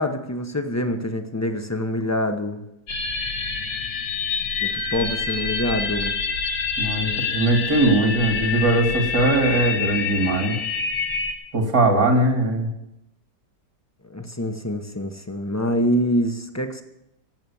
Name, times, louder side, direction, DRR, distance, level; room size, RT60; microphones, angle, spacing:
voice 1, 0.0-2.7 4.6-6.2 14.1-16.8, equal, 15° left, 6 dB, 0.7 m, -25 dB
sound 1, 2.9-11.3, left 5 dB, 70° left, 2.0 m, -27 dB
voice 2, 6.8-10.6 11.5-12.7, right 2 dB, 65° right, 2 dB, 3.1 m, -20 dB
18.0 x 7.9 x 7.1 m, 0.85 s
omnidirectional pair, 1.8 m